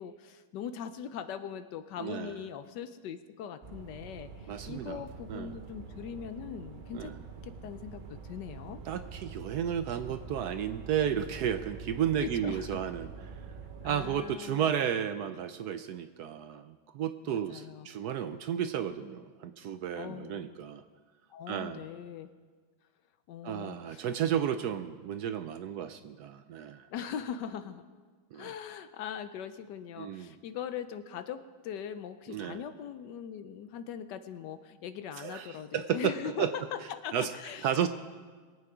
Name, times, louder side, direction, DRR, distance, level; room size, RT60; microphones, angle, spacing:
voice 1, 0.0-7.1 7.4-8.8 12.2-12.8 13.8-14.7 17.3-17.9 20.0-20.6 21.3-22.3 23.3-24.0 26.9-27.8 28.3-37.8, left 8 dB, 70° left, 11 dB, 1.2 m, -41 dB
voice 2, 2.0-2.3 4.5-5.0 5.3-5.6 6.9-7.1 8.9-13.1 13.8-20.8 21.5-21.8 23.4-26.9 28.3-28.5 30.0-30.3 32.3-32.6 35.2-36.5 37.1-37.3 37.6-37.9, right 9 dB, 70° right, 9 dB, 1.0 m, -33 dB
sound 1, 3.6-14.2, right 5 dB, 55° right, 0.5 m, -45 dB
22.0 x 8.5 x 4.9 m, 1.5 s
omnidirectional pair, 2.1 m